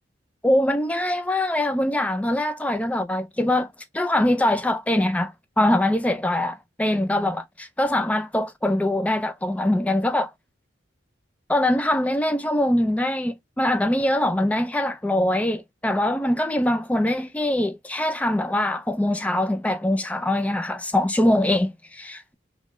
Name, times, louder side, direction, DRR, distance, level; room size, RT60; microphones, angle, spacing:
voice 1, 0.4-3.7 3.9-10.3 11.5-22.3, left 1 dB, 5° left, 0.3 m, -23 dB
3.0 x 2.2 x 3.5 m
head